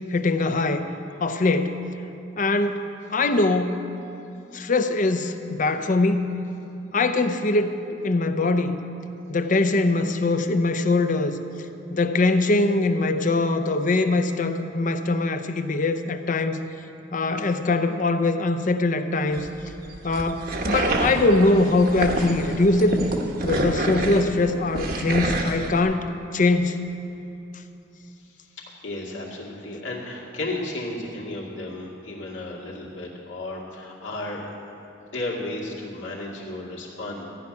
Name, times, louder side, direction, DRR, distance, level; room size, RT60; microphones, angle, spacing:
voice 1, 0.1-0.9 1.2-1.7 2.4-2.8 3.1-3.8 4.5-6.2 6.9-7.7 8.0-8.8 9.3-11.4 11.9-16.6 17.1-19.5 20.0-23.0 23.4-26.0 26.3-26.8, left 2 dB, 45° left, 8 dB, 0.6 m, -22 dB
sound 1, 19.3-25.8, right 2 dB, 55° right, 1.1 m, -28 dB
voice 2, 28.2-34.4 35.0-37.3, left 2 dB, 85° left, -4 dB, 2.3 m, -34 dB
14.0 x 5.7 x 9.5 m, 2.7 s
head